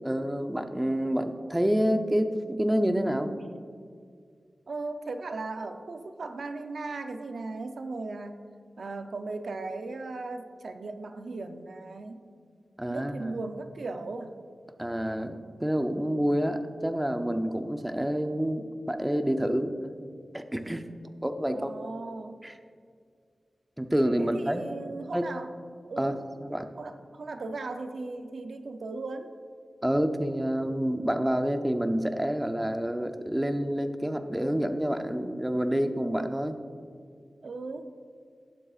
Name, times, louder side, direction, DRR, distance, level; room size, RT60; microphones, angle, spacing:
voice 1, 0.0-3.3 12.8-13.4 14.8-19.7 20.3-20.9 21.2-21.7 22.4-22.5 23.8-24.7 25.1-25.3 26.0-26.7 29.8-36.6, equal, 10° right, 7 dB, 0.6 m, -28 dB
voice 2, 4.7-8.5 8.8-12.2 12.9-14.4 21.5-22.4 24.2-25.5 25.9-26.2 26.8-29.3 37.4-37.9, right 3 dB, 70° right, 7 dB, 0.6 m, -37 dB
18.0 x 7.4 x 2.4 m, 2.1 s
wide cardioid pair, 115°, 0 cm